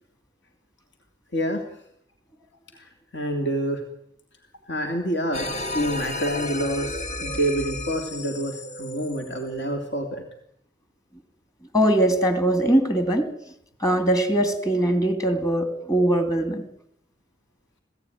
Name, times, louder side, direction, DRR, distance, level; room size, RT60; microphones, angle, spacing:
voice 1, 1.3-1.6 2.7-3.8 4.7-10.2, equal, 70° left, 3 dB, 3.1 m, -27 dB
sound 1, 5.3-10.2, left 2 dB, 40° left, 1.8 m, -33 dB
voice 2, 11.7-13.3 13.8-16.7, right 1 dB, 20° left, 8 dB, 2.9 m, -21 dB
26.0 x 17.5 x 9.5 m, 0.75 s
head